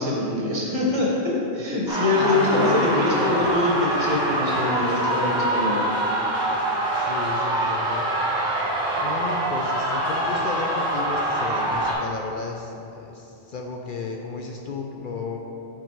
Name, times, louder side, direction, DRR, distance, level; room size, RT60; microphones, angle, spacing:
voice 1, 0.0-5.8, left 2 dB, 25° right, -3 dB, 0.9 m, -24 dB
sound 1, 1.9-11.9, right 1 dB, 5° right, 1.3 m, -25 dB
voice 2, 2.2-3.5 6.4-6.7 7.0-8.4 8.9-15.4, left 4 dB, 60° left, 2 dB, 0.5 m, -33 dB
8.9 x 4.0 x 4.5 m, 2.8 s
omnidirectional pair, 1.3 m